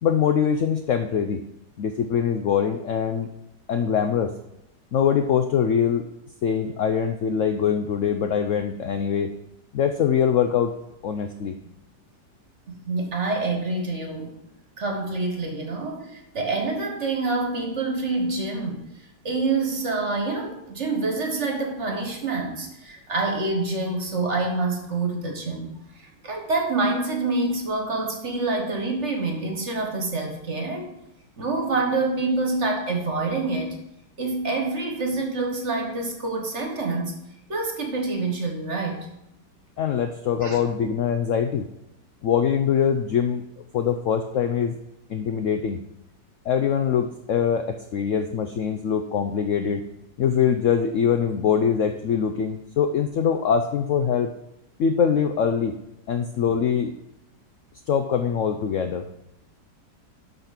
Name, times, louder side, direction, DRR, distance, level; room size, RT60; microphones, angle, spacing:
voice 1, 0.0-1.4 1.8-3.3 3.7-4.3 4.9-6.0 6.4-9.3 9.7-10.7 11.0-11.6 39.8-41.6 42.2-44.8 45.1-45.8 46.5-49.8 50.2-54.3 54.8-55.7 56.1-56.9 57.9-59.0, left 7 dB, 70° left, 7 dB, 0.7 m, -23 dB
voice 2, 12.7-14.3 14.8-18.9 19.2-25.7 26.0-30.9 31.4-33.8 34.2-39.1 40.4-40.6, right 3 dB, 45° right, 3 dB, 1.7 m, -27 dB
12.0 x 4.1 x 5.9 m, 0.86 s
omnidirectional pair, 1.8 m